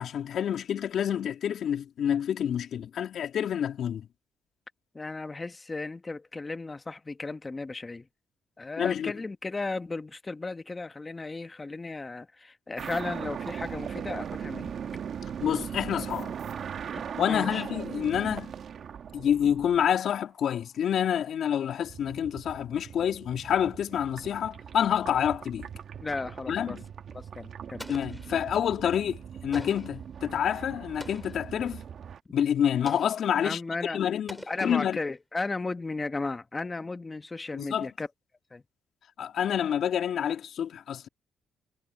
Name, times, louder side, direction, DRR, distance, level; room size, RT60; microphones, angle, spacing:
voice 1, 0.0-4.1 8.8-9.1 15.4-16.3 17.2-18.5 19.1-25.7 26.5-26.8 27.9-31.8 32.3-35.0 37.5-37.9 39.2-41.1, left 9 dB, 65° left, 3.0 m, -28 dB
voice 2, 4.9-8.1 8.6-14.8 16.9-17.0 17.3-17.6 26.0-26.8 27.1-27.9 33.4-34.0 34.5-38.1 38.5-38.6, left 3 dB, 25° left, 1.6 m, -35 dB
sound 1, 12.8-19.9 21.8-32.2, right 8 dB, 60° right, 1.6 m, -39 dB
Explosion, 27.8-28.7 29.5-30.1 31.0-31.5 32.9-33.4 34.3-35.2, equal, ahead, 4.1 m, -46 dB
cardioid pair, 90°, 0 cm